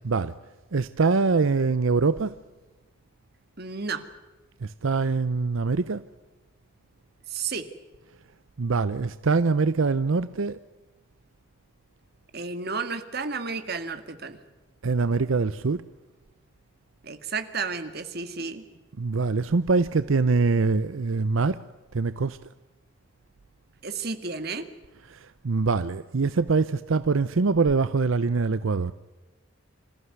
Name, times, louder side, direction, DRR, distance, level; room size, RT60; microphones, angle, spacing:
voice 1, 0.7-2.3 4.6-6.0 8.6-10.6 14.8-15.8 19.0-21.6 21.9-22.4 25.1-28.9, right 4 dB, 85° right, 0.7 m, -24 dB
voice 2, 3.6-4.0 7.3-7.7 12.3-14.4 17.0-18.6 23.8-24.7, right 4 dB, 50° right, 2.0 m, -32 dB
26.5 x 15.0 x 9.5 m
head